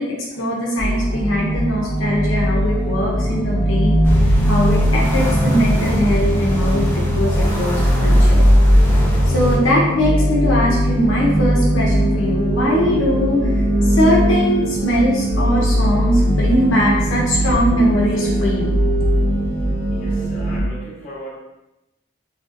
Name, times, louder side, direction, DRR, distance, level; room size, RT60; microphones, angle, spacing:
voice 1, 0.0-4.0 4.5-8.4 9.3-13.5 13.9-18.8, equal, 75° left, -4 dB, 0.6 m, -20 dB
sound 1, 0.8-20.6, equal, 15° right, 1.1 m, -19 dB
sound 2, 4.0-9.6, equal, 10° left, 0.5 m, -20 dB
voice 2, 19.9-21.3, right 1 dB, 45° left, -5 dB, 0.7 m, -35 dB
3.1 x 2.6 x 2.5 m, 0.94 s
head